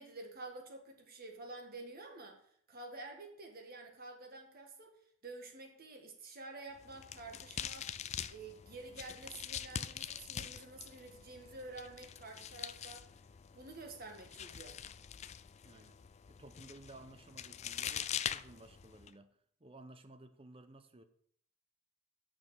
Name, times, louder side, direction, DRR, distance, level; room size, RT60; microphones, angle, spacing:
voice 1, 0.0-4.9 5.2-7.9 8.3-13.1 13.5-14.8, right 2 dB, 40° right, 1.7 m, -49 dB
sound 1, 6.8-19.1, left 9 dB, 30° left, 0.3 m, -44 dB
voice 2, 15.6-16.0 16.3-21.0, right 2 dB, 25° right, 0.7 m, -56 dB
7.1 x 6.3 x 7.5 m
head